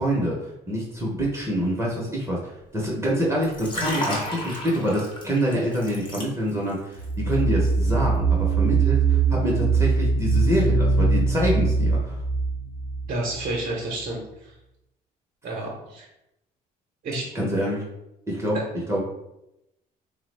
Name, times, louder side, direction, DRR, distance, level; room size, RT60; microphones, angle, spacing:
voice 1, 0.0-12.2 17.3-17.9 18.3-18.6 18.9-19.0, equal, 15° right, -3 dB, 0.7 m, -26 dB
Liquid, 3.4-6.7 7.0-7.3, left 1 dB, 30° left, 0.8 m, -32 dB
sound 1, 7.0-13.6, right 4 dB, 60° left, 0.9 m, -22 dB
voice 2, 13.0-14.5 15.4-16.1 17.0-17.3 18.5-18.6, right 2 dB, 50° right, -2 dB, 0.7 m, -30 dB
3.3 x 2.0 x 3.2 m, 0.87 s
cardioid pair, 110°, 17 cm